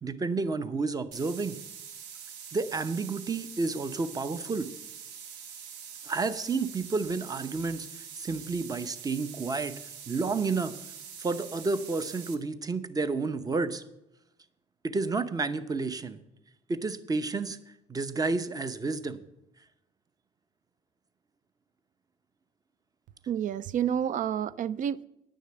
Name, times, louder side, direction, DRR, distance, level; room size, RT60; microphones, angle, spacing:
voice 1, 0.0-1.6 2.5-4.7 6.0-7.9 8.2-9.7 10.1-10.7 11.2-13.8 14.8-16.2 16.7-17.6 17.9-19.2, right 3 dB, 20° right, 0.8 m, -30 dB
sound 1, 1.1-12.3, right 7 dB, 90° right, 1.2 m, -45 dB
voice 2, 23.3-25.0, right 9 dB, 50° right, 0.4 m, -29 dB
9.9 x 6.5 x 7.8 m
cardioid pair, 110°, 17 cm